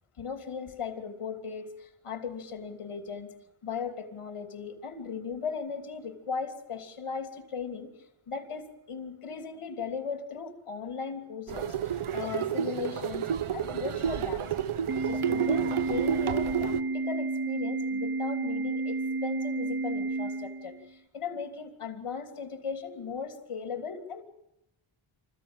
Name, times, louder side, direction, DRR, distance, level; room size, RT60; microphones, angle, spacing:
voice 1, 0.2-3.3 3.6-7.9 8.3-13.3 13.5-14.4 15.0-24.2, left 6 dB, 80° left, 6 dB, 3.1 m, -37 dB
sound 1, 11.5-16.8, right 8 dB, 80° right, 1.2 m, -30 dB
Organ, 14.9-20.9, right 3 dB, 45° right, 1.1 m, -31 dB
27.5 x 15.0 x 9.0 m, 0.88 s
wide cardioid pair, 95°, 50 cm